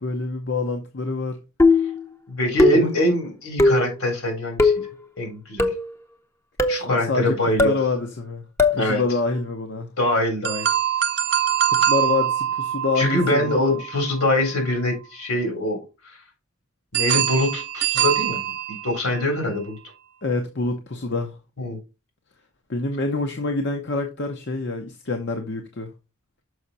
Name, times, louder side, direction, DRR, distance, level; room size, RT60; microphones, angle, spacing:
voice 1, 0.0-1.4 2.7-2.9 6.7-7.4 7.6-8.5 8.7-9.9 11.7-13.8 20.2-21.4 22.7-25.9, left 3 dB, 50° left, 0.9 m, -26 dB
sound 1, 1.6-2.0 2.6-3.0 3.6-3.9 4.6-4.9 5.6-5.9 6.6-6.9 7.6-7.8 8.6-8.9, left 2 dB, 10° left, 0.7 m, -18 dB
voice 2, 2.3-4.7 5.2-5.7 6.7-7.7 8.7-9.0 10.0-10.7 13.0-15.8 16.9-18.4 18.8-19.8 21.6-21.8, left 1 dB, 75° left, 3.8 m, -23 dB
sound 2, 10.4-14.5 16.9-19.3, right 10 dB, 50° right, 0.6 m, -24 dB
6.5 x 5.6 x 4.1 m
head